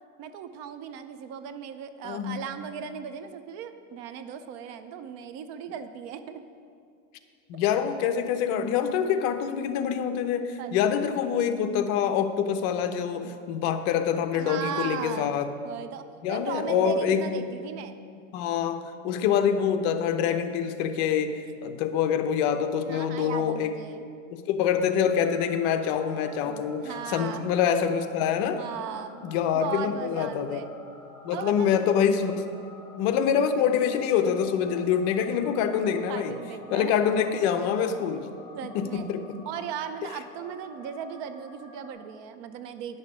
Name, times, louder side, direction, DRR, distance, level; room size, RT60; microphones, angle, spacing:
voice 1, 0.2-6.4 10.6-11.0 14.3-15.3 15.6-18.0 22.9-24.0 26.4-27.4 28.6-29.2 29.5-30.7 31.3-31.8 36.1-37.0 38.5-39.0 39.5-43.0, right 8 dB, 40° right, 10 dB, 0.5 m, -37 dB
voice 2, 2.0-2.4 7.5-15.5 16.2-17.5 18.3-23.7 24.3-28.6 29.2-30.6 31.2-32.4 33.0-36.4 36.7-38.3 38.7-39.4, left 8 dB, 50° left, 8 dB, 0.8 m, -26 dB
sound 1, 25.0-41.9, left 2 dB, 35° left, 1.9 m, -48 dB
10.0 x 6.6 x 6.0 m, 2.4 s
supercardioid pair, 140°, 41 cm